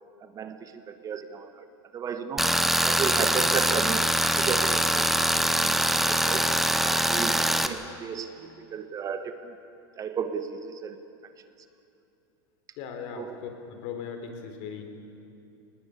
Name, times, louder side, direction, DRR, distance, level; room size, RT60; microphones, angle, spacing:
voice 1, 0.2-1.6 1.9-2.5 2.8-6.4 6.8-8.3 8.7-9.5 10.0-11.0 13.2-13.4, right 6 dB, 30° right, 9 dB, 1.4 m, -34 dB
Tools, 2.4-7.7, right 1 dB, ahead, 1.0 m, -23 dB
voice 2, 12.8-14.8, left 6 dB, 60° left, 6 dB, 3.5 m, -38 dB
22.0 x 19.5 x 8.6 m, 2.7 s
supercardioid pair, 125°, 12 cm